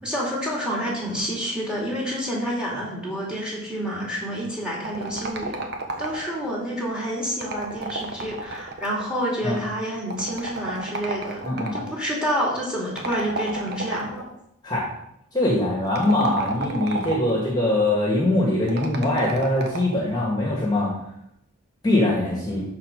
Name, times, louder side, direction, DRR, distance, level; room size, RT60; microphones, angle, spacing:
voice 1, 0.0-5.6 6.0-11.4 11.7-14.3, equal, 5° right, -4 dB, 2.6 m, -28 dB
sound 1, 4.8-6.5 7.3-9.1 10.1-11.9 13.0-14.3 15.8-17.4 18.7-20.0, right 3 dB, 50° right, 1.2 m, -32 dB
voice 2, 11.4-11.7 14.6-14.9 15.3-20.9 21.8-22.6, left 1 dB, 20° left, -3 dB, 1.7 m, -22 dB
12.0 x 4.3 x 5.2 m, 0.78 s
head